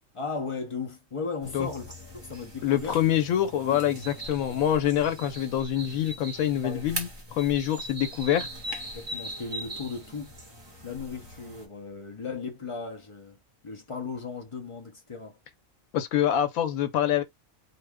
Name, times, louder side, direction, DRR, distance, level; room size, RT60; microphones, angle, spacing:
voice 1, 0.1-3.0 3.7-4.0 6.6-7.0 8.9-10.4 10.8-13.4 13.6-15.4, left 4 dB, 45° left, 0.4 m, -36 dB
sound 1, 1.4-11.7, right 1 dB, 25° right, 0.8 m, -40 dB
voice 2, 2.6-8.5 15.9-17.2, left 10 dB, 85° left, 1.1 m, -25 dB
2.6 x 2.2 x 3.4 m
omnidirectional pair, 1.4 m